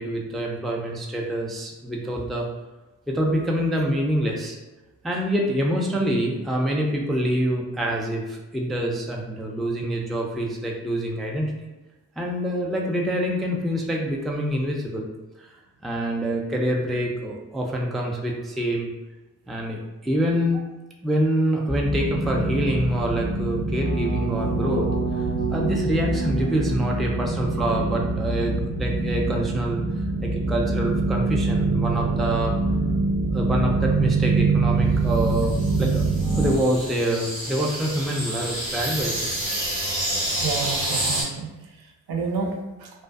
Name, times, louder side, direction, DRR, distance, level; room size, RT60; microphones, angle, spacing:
voice 1, 0.0-2.5 3.1-4.6 5.0-11.5 12.2-15.0 15.4-15.5 15.8-18.9 19.5-20.6 21.0-24.9 25.2-28.5 28.8-29.8 30.2-32.6 33.3-36.0 36.4-39.3, equal, ahead, -1 dB, 0.4 m, -26 dB
sound 1, 21.7-36.5, right 3 dB, 20° right, 0.7 m, -24 dB
sound 2, 35.1-41.2, right 1 dB, 80° right, 1.3 m, -29 dB
voice 2, 40.4-43.0, right 4 dB, 60° right, 1 dB, 0.6 m, -30 dB
2.4 x 2.3 x 2.3 m, 1.1 s
hypercardioid pair, 45°, 42 cm